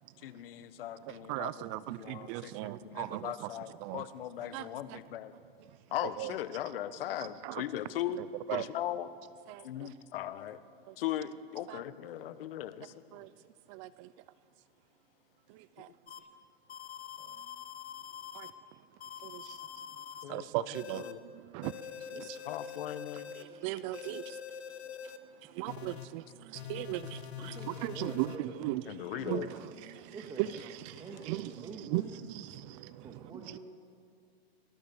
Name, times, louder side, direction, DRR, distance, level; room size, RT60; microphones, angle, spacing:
voice 1, 0.2-5.3 5.9-8.2 8.5-9.1 9.6-10.6 11.0-12.9 20.2-20.5 20.9-21.2 22.4-23.3 28.9-29.5, left 11 dB, 60° left, 13 dB, 1.4 m, -38 dB
voice 2, 1.1-3.5 3.8-4.0 4.5-5.0 6.2-6.3 7.4-7.6 8.5-8.6 9.5-9.6 11.7-11.8 13.1-13.3 13.7-14.1 15.8-15.9 18.3-18.5 19.2-19.6 20.3-21.0 21.5-21.7 22.1-22.4 23.4-24.4 25.6-28.8 29.1-29.5 29.8-31.7 31.9-32.0 32.3-33.2 33.5-33.6, right 17 dB, 30° right, 17 dB, 0.5 m, -37 dB
sound 1, 16.1-16.2 16.7-18.5 19.0-20.2 20.7-21.1 21.6-23.4 23.9-25.2 25.7-26.1 26.5-28.4, left 8 dB, 80° left, 1.8 m, -44 dB
voice 3, 27.4-28.5 29.1-29.4 30.1-30.6 31.0-32.1 33.0-33.6, right 3 dB, 15° right, 1 dB, 2.0 m, -47 dB
27.0 x 20.0 x 7.1 m, 2.3 s
hypercardioid pair, 140°, 31 cm